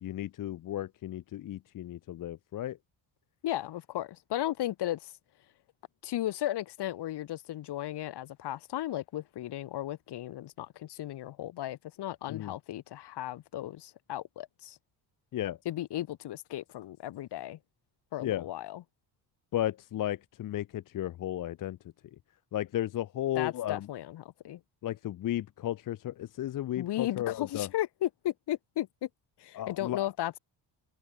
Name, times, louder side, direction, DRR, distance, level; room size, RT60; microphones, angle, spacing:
voice 1, 0.0-2.8 12.3-12.5 15.3-15.6 18.2-18.5 19.5-21.8 22.5-23.9 24.8-27.7 29.5-30.1, left 13 dB, 50° left, 0.7 m, -34 dB
voice 2, 3.4-5.1 6.0-14.8 15.6-17.6 18.1-18.8 23.3-24.6 26.8-29.1 29.4-30.4, left 13 dB, 75° left, 2.7 m, -35 dB
cardioid pair, 155°, 40 cm